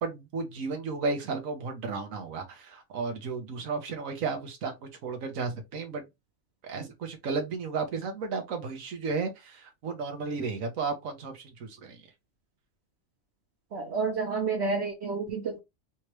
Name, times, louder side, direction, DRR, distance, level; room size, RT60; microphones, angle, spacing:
voice 1, 0.0-4.8 5.0-6.1 6.6-12.0, right 4 dB, 90° right, 1.3 m, -33 dB
voice 2, 13.7-15.6, right 4 dB, 60° right, 1.0 m, -30 dB
3.5 x 3.0 x 3.0 m
omnidirectional pair, 1.4 m